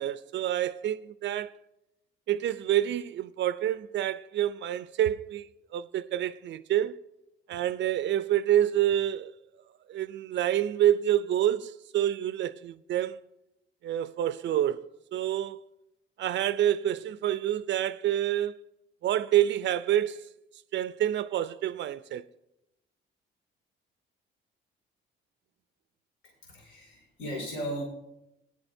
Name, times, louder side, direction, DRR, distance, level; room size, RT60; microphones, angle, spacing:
voice 1, 0.0-1.5 2.3-7.0 7.5-9.4 9.9-13.2 13.8-15.6 16.2-18.6 19.0-20.3 20.7-22.2, right 11 dB, 65° right, 0.4 m, -27 dB
voice 2, 26.2-27.8, equal, 75° left, 2.4 m, -37 dB
17.5 x 9.5 x 2.6 m
cardioid pair, 90°, 20 cm